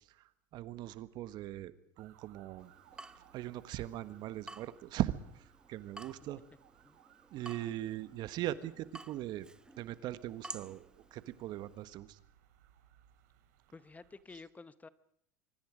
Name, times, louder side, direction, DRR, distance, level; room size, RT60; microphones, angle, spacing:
voice 1, 0.5-2.7 3.3-6.4 7.3-9.5 9.8-12.2, right 14 dB, 55° right, 14 dB, 1.4 m, -40 dB
sound 1, 2.0-14.2, right 12 dB, 75° right, 2.9 m, -65 dB
Water tap faucet / Drip, 2.6-11.8, right 2 dB, 10° right, 1.0 m, -53 dB
voice 2, 13.7-14.9, left 4 dB, 15° left, 15 dB, 1.0 m, -52 dB
25.0 x 24.5 x 5.1 m, 0.70 s
hypercardioid pair, 90°, 9 cm